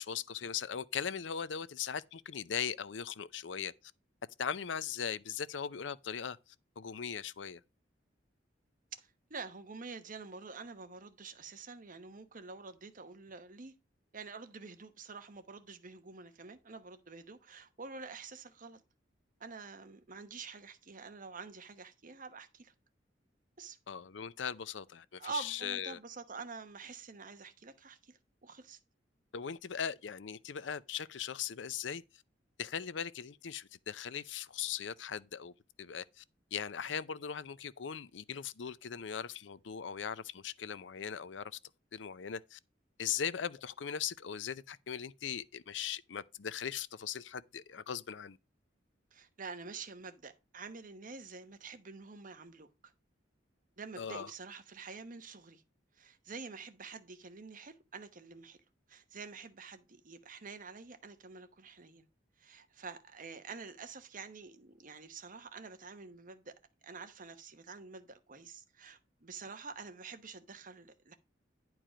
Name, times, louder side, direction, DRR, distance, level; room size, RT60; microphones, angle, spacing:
voice 1, 0.0-3.7 4.4-6.4 6.8-7.6 23.9-26.0 29.3-32.0 32.6-35.5 35.8-36.2 36.5-41.6 41.9-42.6 43.0-48.4 54.0-54.3, left 7 dB, 80° left, 0.6 m, -39 dB
voice 2, 8.9-13.7 14.1-18.8 19.4-22.7 23.6-23.8 25.2-28.8 49.1-52.7 53.8-55.6 55.9-58.6 58.9-62.1 62.4-66.5 66.8-71.1, right 4 dB, 45° right, 1.1 m, -47 dB
10.5 x 4.7 x 5.0 m
head